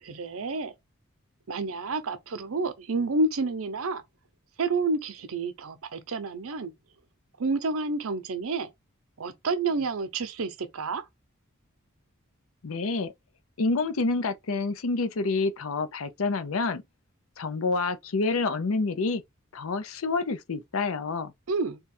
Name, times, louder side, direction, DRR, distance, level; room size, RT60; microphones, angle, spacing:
voice 1, 0.0-0.7 1.5-4.0 4.6-6.7 7.4-8.7 9.2-11.0 21.5-21.8, right 3 dB, 80° right, 0.7 m, -29 dB
voice 2, 12.6-13.1 13.6-16.8 17.4-19.2 19.5-21.3, left 3 dB, 80° left, 0.6 m, -28 dB
3.5 x 2.3 x 4.2 m
head